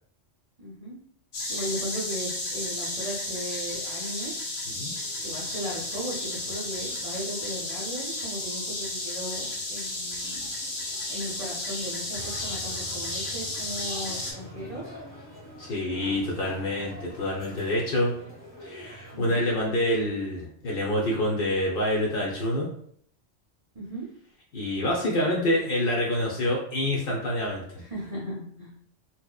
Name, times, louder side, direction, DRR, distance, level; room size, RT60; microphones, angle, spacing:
voice 1, 0.6-1.0 1.5-4.4 5.2-10.5 11.1-14.9 16.3-16.6 19.1-19.4 23.7-24.1 27.8-28.7, equal, 40° right, -7 dB, 0.5 m, -37 dB
sound 1, 1.3-14.3, left 2 dB, 80° left, 1.0 m, -33 dB
sound 2, 4.8-19.4, equal, 20° left, 0.8 m, -47 dB
voice 2, 15.6-18.1 18.6-22.7 24.5-27.8, left 1 dB, 60° left, -2 dB, 0.7 m, -27 dB
2.7 x 2.0 x 2.2 m, 0.65 s
omnidirectional pair, 1.2 m